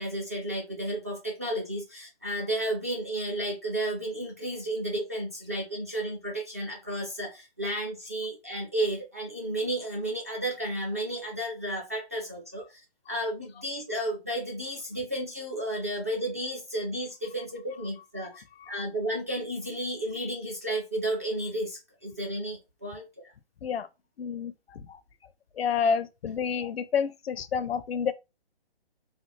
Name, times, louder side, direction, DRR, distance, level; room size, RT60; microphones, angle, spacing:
voice 1, 0.0-12.8 13.1-18.3 18.7-23.3, right 1 dB, 15° right, 0.3 m, -32 dB
voice 2, 24.2-25.0 25.5-28.1, left 6 dB, 75° left, 0.6 m, -29 dB
3.2 x 2.0 x 3.1 m
hypercardioid pair, 150°, 30 cm